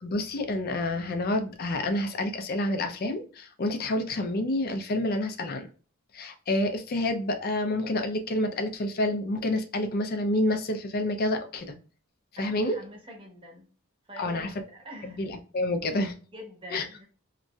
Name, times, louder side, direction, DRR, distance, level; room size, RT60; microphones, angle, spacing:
voice 1, 0.0-5.7 6.1-11.7 12.4-12.8 14.2-14.5 15.0-16.1 16.7-16.9, left 1 dB, 45° left, 0.4 m, -28 dB
voice 2, 12.4-13.7 14.1-15.2 16.3-17.0, equal, 25° right, 0.8 m, -45 dB
2.9 x 2.6 x 2.2 m
head